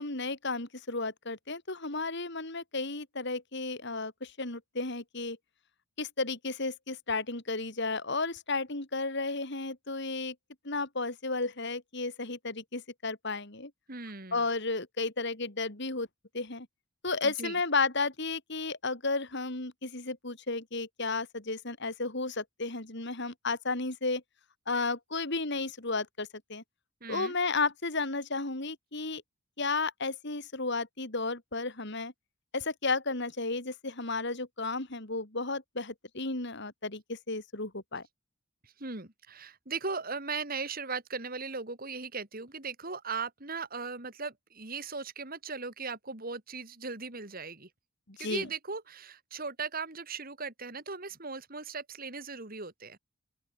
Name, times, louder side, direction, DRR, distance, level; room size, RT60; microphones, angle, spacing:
voice 1, 0.0-5.4 6.0-10.3 10.6-13.7 14.3-16.1 16.3-16.7 17.0-24.2 24.7-26.6 27.1-29.2 29.6-32.1 32.5-38.0 48.1-48.5, left 3 dB, 55° left, 3.1 m, -33 dB
voice 2, 13.9-14.4 17.2-17.6 27.0-27.3 38.6-47.7 48.2-53.0, right 4 dB, 45° right, 3.2 m, -38 dB
open air
head